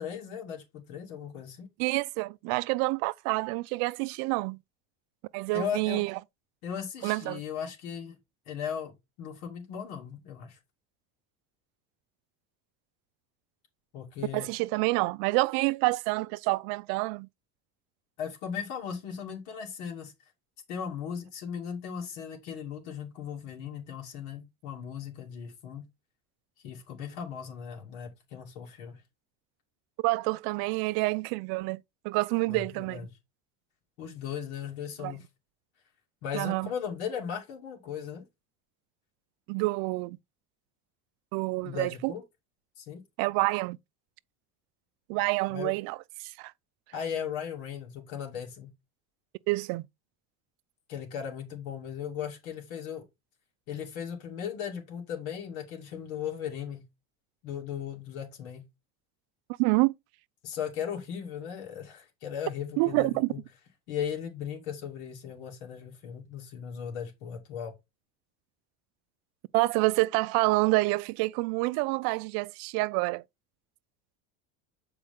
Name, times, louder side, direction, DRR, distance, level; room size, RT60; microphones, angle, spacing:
voice 1, 0.0-1.7 5.5-6.0 6.6-8.2 8.5-10.6 13.9-14.5 18.2-20.1 20.7-25.8 26.6-29.0 32.5-33.1 34.0-35.3 36.2-38.2 41.6-42.2 42.8-43.0 45.5-45.7 46.9-48.7 50.9-53.0 53.7-56.8 57.4-58.6 60.4-63.4 63.9-67.7, left 8 dB, 85° left, 2.6 m, -37 dB
voice 2, 1.8-4.6 5.3-6.2 7.0-7.4 14.3-17.3 30.0-33.0 35.0-35.1 36.3-36.7 39.5-40.2 41.3-42.1 43.2-43.8 45.1-46.5 49.5-49.9 59.6-59.9 62.8-63.3 69.5-73.2, right 23 dB, 60° right, 0.5 m, -28 dB
7.9 x 4.8 x 3.6 m
cardioid pair, 145°, 41 cm